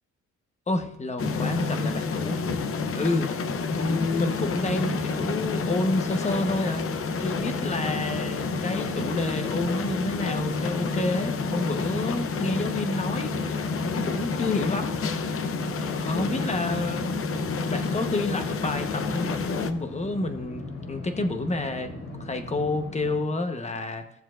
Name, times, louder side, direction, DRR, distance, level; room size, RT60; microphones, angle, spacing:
voice 1, 0.7-2.4 2.9-3.3 3.7-6.9 7.2-13.3 14.0-15.0 16.0-17.1 17.7-21.9 22.2-24.0, left 2 dB, 20° left, 6 dB, 1.1 m, -29 dB
sound 1, 1.2-19.7, left 4 dB, 45° left, 0.8 m, -29 dB
sound 2, 3.6-23.2, left 2 dB, 65° left, 3.7 m, -40 dB
16.5 x 7.2 x 2.5 m, 0.82 s
cardioid pair, 90°, 30 cm